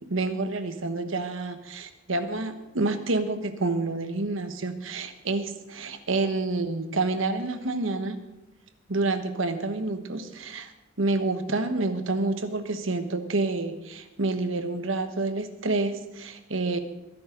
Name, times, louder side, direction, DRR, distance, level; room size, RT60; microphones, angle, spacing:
voice 1, 0.0-8.2 8.9-10.7 11.0-16.8, right 2 dB, 75° right, 9 dB, 1.3 m, -28 dB
22.0 x 11.0 x 4.0 m, 0.98 s
head